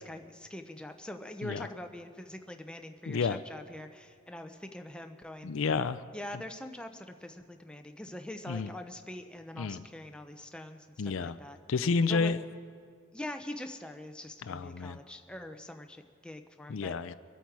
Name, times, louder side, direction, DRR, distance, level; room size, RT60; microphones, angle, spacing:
voice 1, 0.0-5.5 6.1-11.6 12.1-12.3 13.1-16.9, left 1 dB, 5° left, 6 dB, 0.7 m, -43 dB
voice 2, 3.1-3.4 5.4-6.0 8.5-8.7 9.6-9.9 11.0-11.4 11.7-12.4 14.5-15.0 16.7-17.1, left 4 dB, 70° left, 13 dB, 0.4 m, -30 dB
24.5 x 8.4 x 4.7 m, 2.2 s
head